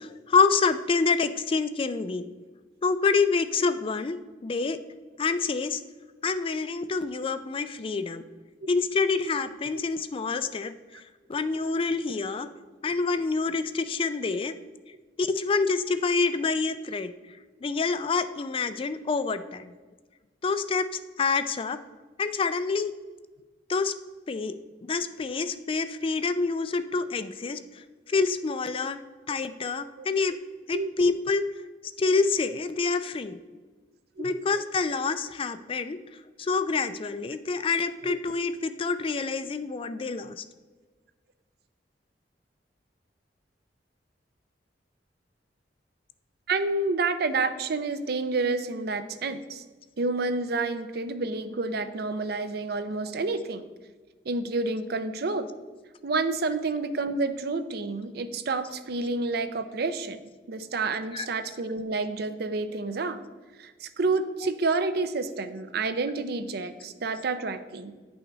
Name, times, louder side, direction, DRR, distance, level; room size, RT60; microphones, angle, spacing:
voice 1, 0.0-2.3 2.8-4.8 5.2-5.8 6.2-8.2 8.7-11.0 11.3-12.5 12.8-14.5 15.2-17.1 17.6-19.7 20.4-20.9 21.2-21.8 22.2-22.9 23.7-23.9 24.3-24.5 24.9-29.0 29.3-30.4 30.7-31.4 32.0-33.4 34.2-36.0 36.4-40.4 61.1-61.3, left 4 dB, 30° left, 11 dB, 0.4 m, -27 dB
voice 2, 46.5-49.6 50.0-53.6 54.3-55.5 56.0-63.2 63.6-67.9, right 3 dB, 60° right, 11 dB, 0.6 m, -29 dB
9.7 x 5.7 x 4.0 m, 1.3 s
head